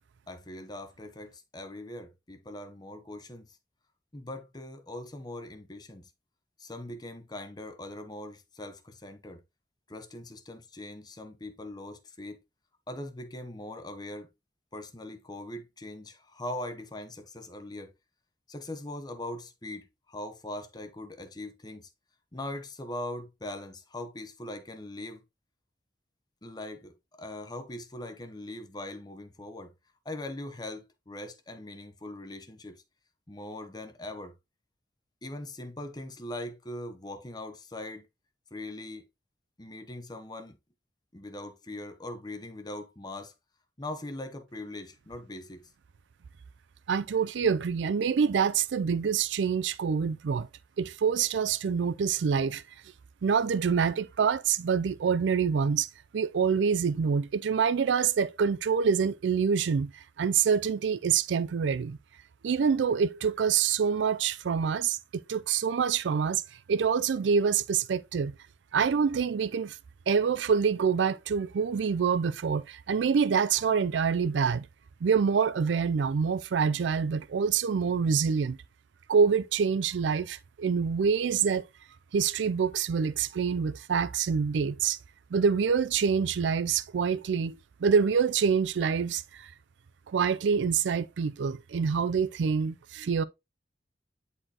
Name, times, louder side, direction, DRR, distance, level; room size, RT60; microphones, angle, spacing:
voice 1, 0.3-3.6 4.1-6.1 6.6-9.4 9.9-12.4 12.9-14.3 14.7-17.9 18.5-21.9 22.3-25.2 26.4-29.7 30.0-32.8 33.3-34.3 35.2-38.1 38.5-39.0 39.6-40.6 41.1-43.3 43.8-45.7, left 1 dB, 25° left, 0.9 m, -41 dB
voice 2, 46.9-50.5 50.8-52.6 53.2-62.0 62.4-66.4 66.7-68.3 68.7-69.8 70.1-74.7 75.0-78.6 79.1-81.7 82.1-85.0 85.3-89.5 90.1-93.2, right 6 dB, 90° right, 0.4 m, -26 dB
9.9 x 4.3 x 2.9 m
head